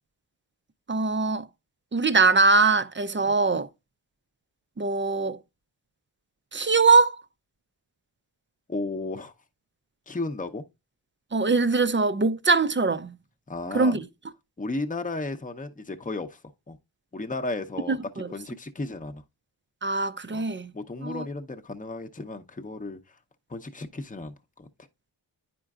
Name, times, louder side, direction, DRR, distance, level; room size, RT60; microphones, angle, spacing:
voice 1, 0.9-1.5 1.9-3.7 4.8-5.4 6.5-7.2 11.3-13.2 13.7-14.1 17.9-18.3 19.8-20.7 21.0-21.3, right 4 dB, 25° right, 0.5 m, -22 dB
voice 2, 8.7-9.3 10.1-10.7 13.5-14.0 14.6-16.4 16.7-16.8 17.1-18.0 18.3-19.2 20.3-20.4 20.7-23.0 23.5-24.7, left 2 dB, 20° left, 0.8 m, -34 dB
9.8 x 4.4 x 2.4 m
cardioid pair, 40°, 46 cm